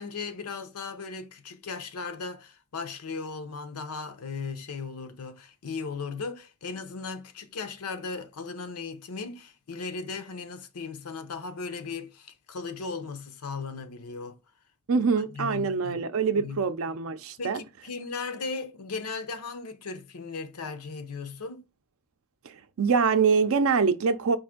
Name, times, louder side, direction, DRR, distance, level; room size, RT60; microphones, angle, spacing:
voice 1, 0.0-14.4 15.3-16.1 16.3-16.6 17.4-21.6, left 4 dB, 85° left, 0.6 m, -37 dB
voice 2, 14.9-17.6 22.4-24.4, right 5 dB, 65° right, 0.5 m, -24 dB
4.7 x 2.5 x 3.6 m
head